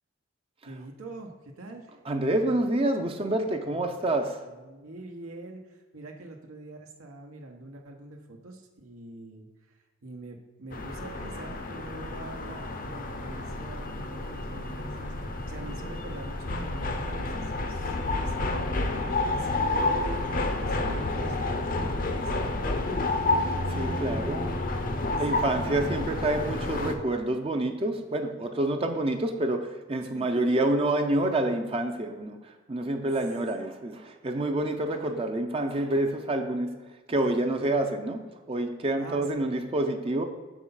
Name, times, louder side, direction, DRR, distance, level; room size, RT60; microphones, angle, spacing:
voice 1, 0.6-2.0 3.7-3.8 4.4-15.1 15.5-20.3 20.6-24.3 24.9-25.9 30.0-30.6 37.6-37.8 39.0-39.5, right 2 dB, 90° right, 2 dB, 0.9 m, -44 dB
voice 2, 2.1-4.4 23.7-24.5 25.2-40.2, right 1 dB, 25° right, 6 dB, 0.4 m, -28 dB
sound 1, 10.7-26.9, left 2 dB, 40° left, 0.6 m, -30 dB
6.7 x 4.8 x 5.5 m, 1.3 s
head